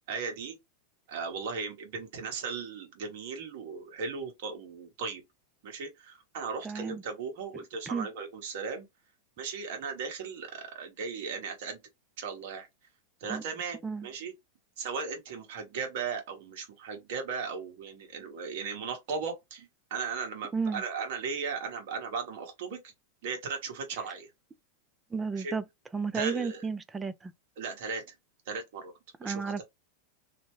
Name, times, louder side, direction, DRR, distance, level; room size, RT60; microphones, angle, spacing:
voice 1, 0.1-0.6 1.1-5.2 5.6-8.8 9.4-11.8 12.2-12.7 13.2-14.3 14.8-22.8 23.2-24.3 25.3-25.5 26.1-26.7 27.6-28.1 28.5-28.9 29.2-29.6, right 5 dB, 65° right, 1.2 m, -37 dB
voice 2, 6.6-7.0 7.9-8.1 13.3-13.4 13.8-14.1 20.5-20.8 25.1-25.6 25.9-27.3 29.2-29.6, right 5 dB, 15° right, 0.3 m, -32 dB
2.7 x 2.1 x 3.0 m
supercardioid pair, 130°, 0 cm